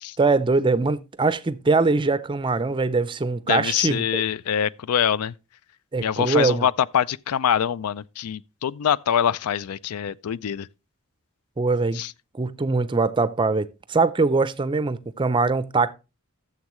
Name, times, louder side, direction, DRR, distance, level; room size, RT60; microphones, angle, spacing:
voice 1, 0.2-4.2 5.9-6.7 11.6-12.0 12.3-15.9, right 3 dB, 20° right, 0.5 m, -22 dB
voice 2, 3.5-5.3 6.0-10.7 11.9-12.1, left 9 dB, 85° left, 0.4 m, -24 dB
13.0 x 7.3 x 3.1 m
head